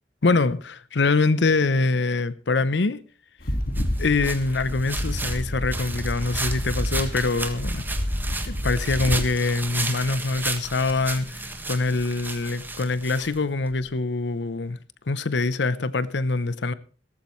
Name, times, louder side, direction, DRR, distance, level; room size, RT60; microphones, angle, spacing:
voice 1, 0.2-3.0 4.0-7.8 8.5-14.8 15.1-16.7, left 3 dB, 70° left, 0.7 m, -24 dB
sound 1, 3.4-9.2, equal, 55° left, 1.9 m, -29 dB
sound 2, 3.7-13.8, right 2 dB, 10° right, 1.5 m, -34 dB
17.5 x 14.0 x 3.2 m
head